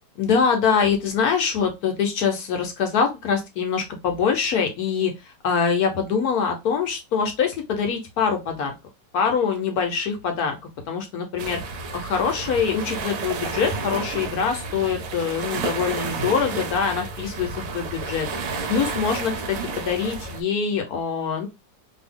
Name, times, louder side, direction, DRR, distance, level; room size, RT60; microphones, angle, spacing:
voice 1, 0.2-8.7 9.1-10.6 10.9-11.6 11.9-18.3 18.7-21.5, left 6 dB, 65° left, 4 dB, 1.1 m, -24 dB
sound 1, 11.4-20.4, right 4 dB, 65° right, 0.9 m, -31 dB
2.7 x 2.6 x 3.5 m, 0.24 s
omnidirectional pair, 2.0 m